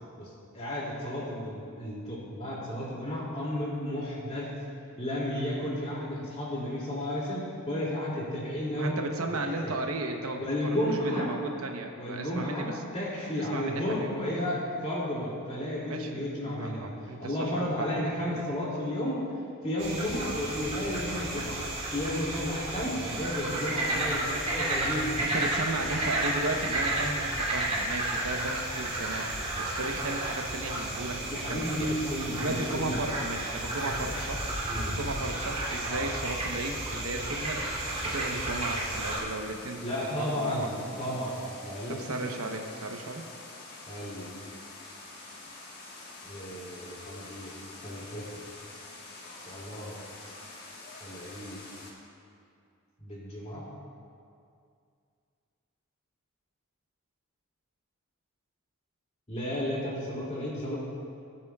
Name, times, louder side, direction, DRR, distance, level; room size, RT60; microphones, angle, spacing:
voice 1, 0.2-4.5 5.0-9.0 9.3-9.7 10.4-11.3 12.0-16.9 17.2-19.2 19.6-21.6 21.9-25.2 31.3-33.0 33.8-34.1 34.7-34.9 35.8-36.1 39.8-42.1 43.9-44.3 46.2-47.5 47.8-48.2 49.5-50.0 50.2-50.3 51.0-51.6 53.0-53.6 59.3-60.8, left 1 dB, 30° left, -5 dB, 2.5 m, -33 dB
voice 2, 8.7-12.7 13.4-14.1 15.8-18.0 18.3-18.4 25.2-31.9 32.4-34.4 34.9-37.7 38.0-39.8 40.3-40.7 41.9-43.2, right 2 dB, 80° right, 4 dB, 0.9 m, -35 dB
sound 1, 19.8-39.2, right 1 dB, 30° right, 2.8 m, -32 dB
sound 2, 37.8-51.9, left 2 dB, 45° left, 1.4 m, -46 dB
19.0 x 8.7 x 2.3 m, 2.4 s
head